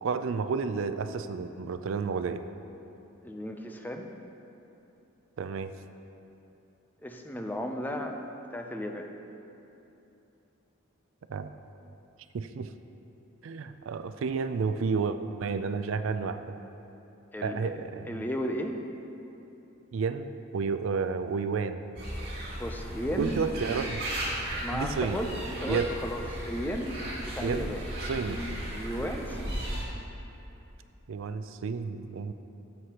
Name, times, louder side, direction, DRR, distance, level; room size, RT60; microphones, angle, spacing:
voice 1, 0.0-2.4 5.4-5.7 11.3-11.5 12.3-12.7 13.4-16.6 17.4-18.2 19.9-21.8 23.2-24.1 24.7-25.2 25.7-25.9 27.4-27.7 28.1-28.4 31.1-32.3, right 5 dB, 70° right, 10 dB, 0.4 m, -31 dB
voice 2, 3.2-4.1 7.0-8.2 8.5-9.1 17.3-17.7 18.1-18.8 22.6-23.4 24.4-27.0 27.2-27.8 28.2-29.7, equal, 10° left, 4 dB, 0.5 m, -35 dB
sound 1, 22.0-29.8, right 1 dB, 55° right, 2.1 m, -36 dB
13.0 x 7.9 x 2.9 m, 2.9 s
head